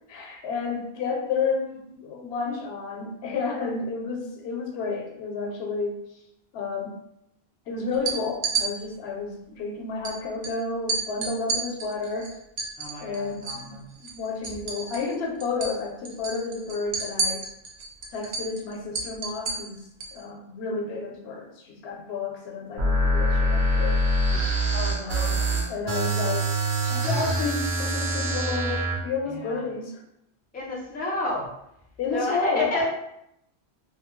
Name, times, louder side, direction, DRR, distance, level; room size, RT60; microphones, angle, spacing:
voice 1, 0.1-6.0 6.5-7.0 7.7-12.3 13.0-17.5 18.1-19.9 20.1-24.1 24.9-26.5 26.8-30.0 32.0-32.7, left 4 dB, 80° left, 2 dB, 0.8 m, -31 dB
sound 1, 7.9-8.7 10.0-10.1 10.4-10.5 10.9-13.7 14.0-15.2 15.4-15.8 16.1-20.2, right 4 dB, 55° right, 0.5 m, -30 dB
voice 2, 12.8-13.9 24.7-25.6 29.2-29.6 30.5-31.5 32.1-32.9, left 2 dB, 15° left, -3 dB, 0.4 m, -31 dB
sound 2, 22.8-29.0, right 1 dB, 85° right, 0.9 m, -24 dB
2.6 x 2.2 x 3.0 m, 0.78 s
omnidirectional pair, 1.1 m